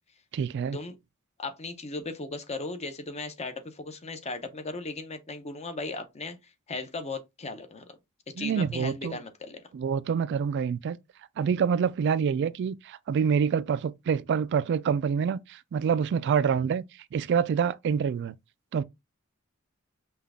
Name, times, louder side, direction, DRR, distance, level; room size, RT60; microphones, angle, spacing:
voice 1, 0.3-0.8 8.4-9.2 9.7-11.0 11.4-16.8 17.1-18.4 18.7-18.8, right 7 dB, 55° right, 0.3 m, -26 dB
voice 2, 1.4-6.4 6.7-7.8 8.4-9.6, left 3 dB, 30° left, 0.8 m, -37 dB
5.6 x 2.3 x 3.5 m
head